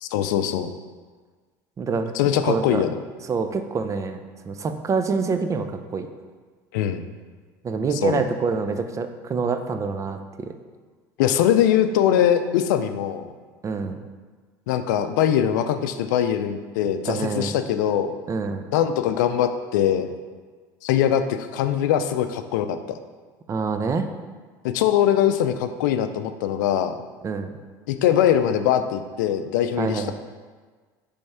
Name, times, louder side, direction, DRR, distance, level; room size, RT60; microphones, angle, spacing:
voice 1, 0.0-0.7 2.1-2.9 6.7-7.0 7.9-8.2 11.2-13.3 14.7-18.1 18.7-20.1 20.8-23.0 24.6-26.9 27.9-30.1, left 10 dB, 80° left, 9 dB, 0.4 m, -22 dB
voice 2, 1.8-2.1 2.4-2.8 3.3-4.2 4.5-6.1 7.6-10.5 13.6-14.0 17.0-17.6 18.3-18.6 23.5-24.1 27.2-27.5 29.8-30.1, right 4 dB, 30° right, 8 dB, 0.5 m, -26 dB
5.3 x 3.5 x 5.5 m, 1.5 s
supercardioid pair, 85°, 10 cm